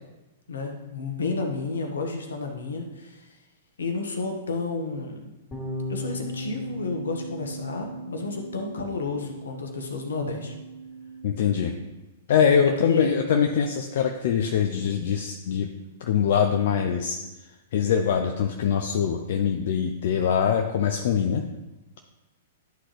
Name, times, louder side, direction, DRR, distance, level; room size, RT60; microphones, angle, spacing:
voice 1, 0.5-3.3 3.8-5.2 5.9-10.5 12.9-13.1, left 3 dB, 80° left, 3 dB, 1.2 m, -31 dB
sound 1, 5.5-11.8, right 1 dB, 25° left, 2.4 m, -37 dB
voice 2, 11.2-11.7 12.3-15.7 16.0-17.2 17.7-21.4, left 7 dB, 60° left, 4 dB, 0.5 m, -23 dB
11.0 x 3.9 x 3.3 m, 1.1 s
hypercardioid pair, 110°, 0 cm